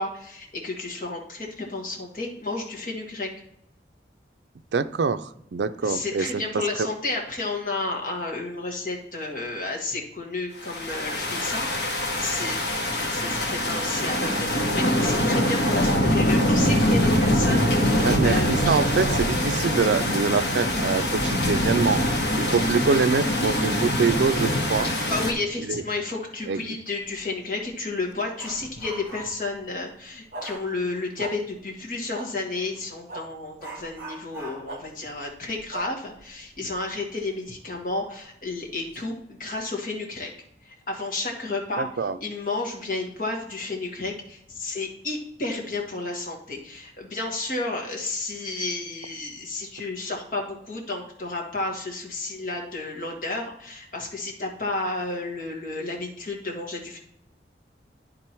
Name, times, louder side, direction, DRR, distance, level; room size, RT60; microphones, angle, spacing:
voice 1, 0.0-3.3 5.8-18.8 25.1-40.3 40.6-41.8 42.2-57.0, left 3 dB, 50° left, 0 dB, 1.7 m, -32 dB
voice 2, 4.7-6.4 6.8-6.9 18.0-24.9 25.6-25.8 26.5-26.6 41.8-42.2, right 5 dB, 75° right, 12 dB, 0.4 m, -25 dB
sound 1, 10.6-25.3, left 1 dB, 75° left, 1.3 m, -23 dB
Dog, 27.0-27.2 27.6-29.5 30.4-30.7 32.7-32.9 33.6-36.9 37.2-37.3 37.8-37.9 38.6-39.0 39.3-39.6, right 2 dB, 10° right, 3.0 m, -43 dB
sound 2, 30.3-30.5 31.2-31.3 32.1-32.3 33.1-33.2 34.7-34.8 35.7-35.9, right 3 dB, 40° right, 1.6 m, -36 dB
11.0 x 3.7 x 4.4 m, 0.76 s
head